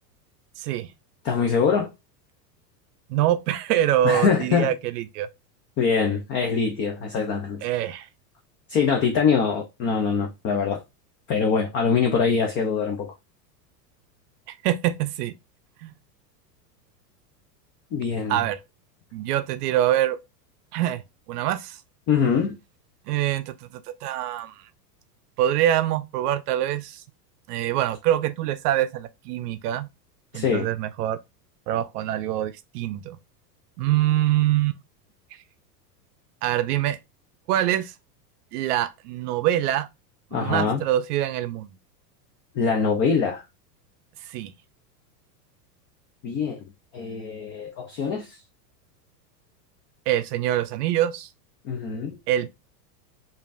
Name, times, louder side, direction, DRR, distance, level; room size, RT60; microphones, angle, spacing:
voice 1, 0.6-0.9 3.1-5.3 7.6-8.1 14.5-15.3 15.8-15.9 18.3-18.6 19.1-20.2 20.7-21.0 21.3-21.8 23.1-24.5 25.4-27.0 27.5-29.9 30.3-31.2 31.7-33.2 33.8-34.7 36.4-37.0 37.5-37.9 38.5-39.9 40.3-41.7 44.3-44.5 50.1-51.3 52.3-52.5, right 12 dB, 65° right, 0.5 m, -24 dB
voice 2, 1.2-1.9 4.0-4.7 5.8-7.6 8.7-10.8 11.3-13.1 17.9-18.4 22.1-22.6 30.3-30.7 40.3-40.8 42.5-43.4 46.2-46.6 46.9-48.4 51.6-52.2, left 6 dB, 25° left, 0.4 m, -23 dB
5.0 x 2.6 x 2.4 m
supercardioid pair, 125°, 50 cm